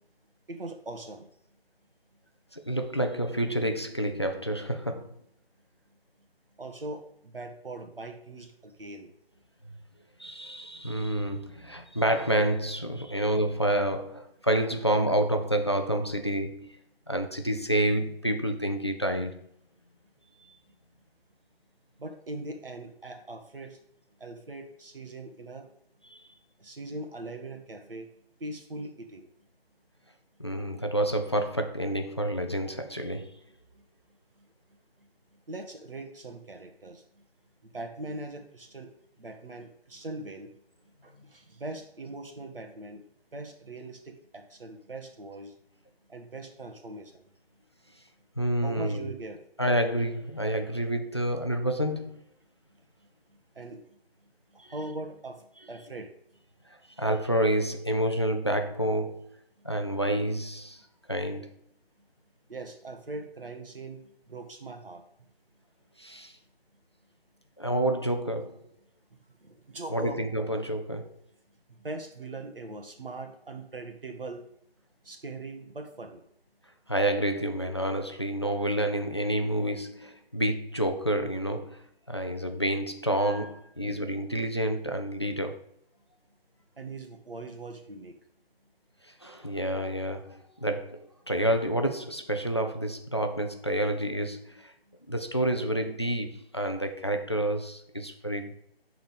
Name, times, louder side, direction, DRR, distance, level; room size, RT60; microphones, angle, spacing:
voice 1, 0.5-1.3 6.6-9.1 22.0-23.8 24.2-25.7 26.6-28.1 28.4-29.3 35.5-37.0 37.6-38.9 39.2-40.5 41.0-43.0 43.3-45.5 46.1-47.2 48.6-49.4 53.5-53.8 54.5-56.1 62.5-65.0 69.4-70.2 71.7-74.5 75.0-76.2 86.8-88.1, right 2 dB, 60° right, 5 dB, 1.6 m, -41 dB
voice 2, 2.5-5.2 10.2-16.8 17.1-19.4 26.1-26.2 30.4-33.4 48.4-49.1 49.6-52.2 54.6-54.7 56.7-59.3 59.6-60.8 61.1-61.5 66.0-66.3 67.6-68.6 69.9-71.2 76.9-85.6 89.0-94.7 95.1-98.6, right 1 dB, 25° left, 6 dB, 0.5 m, -29 dB
8.5 x 4.0 x 6.5 m, 0.70 s
figure-of-eight pair, 155°, 31 cm